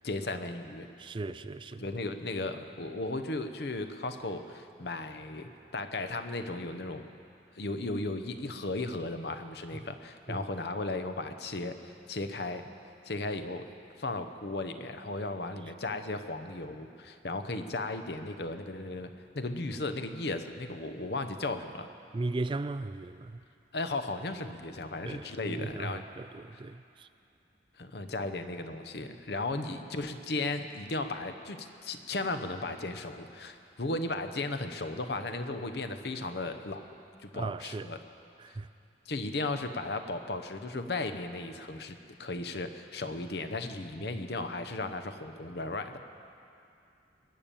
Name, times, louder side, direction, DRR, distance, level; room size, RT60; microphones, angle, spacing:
voice 1, 0.0-0.9 1.8-7.1 7.5-12.7 13.0-13.7 14.0-21.9 23.7-26.0 27.8-36.8 37.2-38.0 38.5-38.6 39.1-46.0, left 2 dB, 60° left, 0.9 m, -35 dB
voice 2, 1.0-1.9 10.3-10.5 22.1-23.4 25.0-27.1 37.3-37.9 38.4-38.7, right 2 dB, 25° right, 0.3 m, -37 dB
22.0 x 8.9 x 6.9 m
head